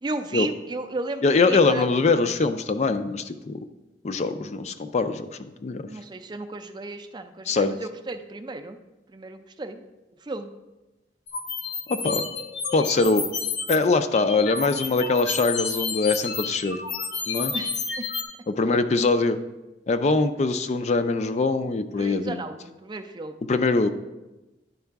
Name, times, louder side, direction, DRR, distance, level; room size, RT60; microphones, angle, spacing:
voice 1, 0.0-1.9 5.9-8.8 9.1-9.9 10.2-10.5 17.5-18.1 22.0-23.4, right 2 dB, 25° right, 8 dB, 0.4 m, -34 dB
voice 2, 1.2-3.6 4.0-5.8 7.5-7.7 11.9-12.2 12.7-13.3 13.7-16.8 17.3-17.5 18.5-19.4 19.9-22.4 23.5-23.9, left 3 dB, 40° left, 9 dB, 0.4 m, -23 dB
sound 1, 11.3-13.8 14.1-18.2, left 5 dB, 90° left, 0.9 m, -30 dB
10.5 x 4.7 x 3.4 m, 1.0 s
head